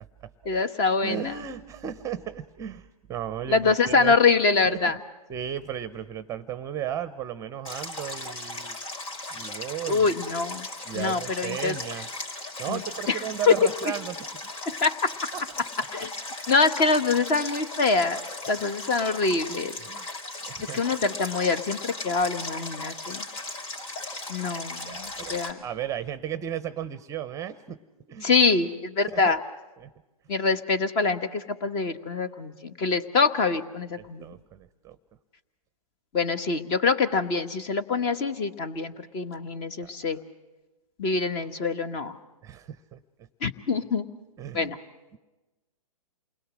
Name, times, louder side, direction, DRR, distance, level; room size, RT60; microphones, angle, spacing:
voice 1, 0.4-1.3 3.5-5.0 9.9-10.7 10.9-11.8 12.7-12.8 13.1-13.2 13.5-13.6 13.8-13.9 14.6-15.1 15.9-16.1 16.5-18.2 18.5-19.7 20.6-23.2 24.3-25.6 28.2-29.4 30.3-34.3 36.1-40.2 41.0-42.2 43.4-44.0 44.5-44.8, left 4 dB, 30° left, 11 dB, 1.3 m, -25 dB
voice 2, 1.0-4.2 4.7-4.8 5.3-8.8 9.3-10.1 10.9-12.1 12.6-14.8 19.8-20.1 20.5-21.0 24.8-27.8 28.1-28.3 29.1-29.3 29.8-29.9 34.2-35.0 39.8-40.1 42.4-43.0 44.4-44.7, right 9 dB, 15° right, 13 dB, 0.8 m, -35 dB
Stream, 7.6-25.5, left 2 dB, 65° left, 4.0 m, -37 dB
28.5 x 21.0 x 6.3 m, 1.1 s
hypercardioid pair, 125°, 19 cm